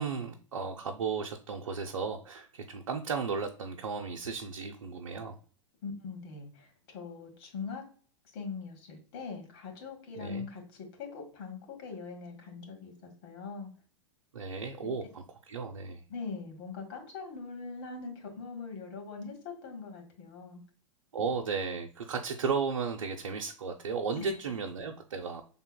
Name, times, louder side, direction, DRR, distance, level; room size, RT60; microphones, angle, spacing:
voice 1, 0.0-5.4 10.2-10.5 14.3-16.0 21.1-25.4, right 5 dB, 85° right, 2 dB, 0.6 m, -34 dB
voice 2, 5.8-7.8 8.3-10.6 11.0-13.7 16.1-20.6 24.2-24.3, left 5 dB, 55° left, 3 dB, 1.8 m, -42 dB
5.6 x 3.5 x 2.2 m, 0.42 s
hypercardioid pair, 105°, 16 cm